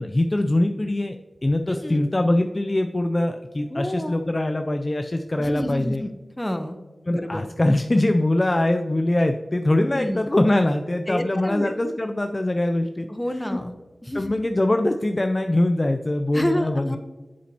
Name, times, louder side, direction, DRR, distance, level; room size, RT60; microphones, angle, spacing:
voice 1, 0.0-6.0 7.1-13.1 13.4-13.6 14.1-17.0, left 1 dB, 30° left, 5 dB, 0.4 m, -23 dB
voice 2, 1.7-2.1 3.7-4.2 5.4-6.8 7.1-7.4 9.9-10.3 11.1-11.7 13.1-13.7 14.0-14.4 16.3-17.0, left 1 dB, 15° left, 7 dB, 0.9 m, -29 dB
8.3 x 7.3 x 2.9 m, 1.2 s
wide cardioid pair, 60°, 0 cm